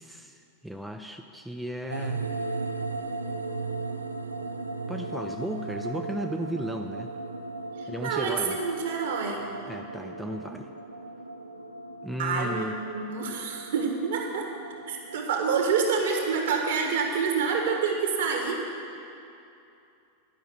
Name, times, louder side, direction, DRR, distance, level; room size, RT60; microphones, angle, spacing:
voice 1, 0.0-2.3 4.9-7.1 7.9-8.6 9.7-10.7 12.0-12.8, equal, 5° right, 4 dB, 0.4 m, -35 dB
sound 1, 1.9-17.8, right 3 dB, 80° right, 0.4 m, -37 dB
voice 2, 7.8-9.5 12.2-14.5 14.9-18.6, right 5 dB, 60° right, 1 dB, 1.4 m, -27 dB
10.0 x 5.6 x 7.3 m, 2.6 s
figure-of-eight pair, 90°, 0 cm